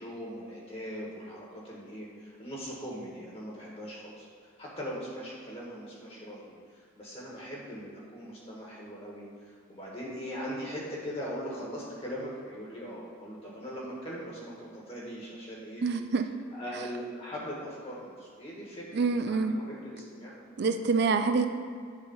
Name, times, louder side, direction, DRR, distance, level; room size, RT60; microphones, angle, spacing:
voice 1, 0.0-15.9 16.5-20.3 20.9-21.2, equal, 30° left, -5 dB, 1.4 m, -40 dB
voice 2, 15.8-16.3 18.9-19.6 20.6-21.5, right 4 dB, 50° right, 8 dB, 0.4 m, -26 dB
8.2 x 3.3 x 5.4 m, 2.1 s
head